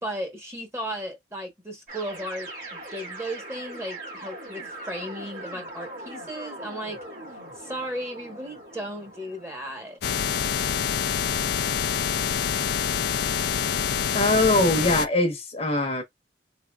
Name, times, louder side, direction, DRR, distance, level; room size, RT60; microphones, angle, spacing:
voice 1, 0.0-7.0 7.6-10.0, equal, 15° right, 1.1 m, -35 dB
sound 1, 1.9-10.0, right 1 dB, 45° right, 1.8 m, -41 dB
sound 2, 10.0-15.1, left 8 dB, 65° left, 0.4 m, -26 dB
voice 2, 14.1-16.0, left 2 dB, 35° left, 0.9 m, -22 dB
3.6 x 2.7 x 2.3 m
head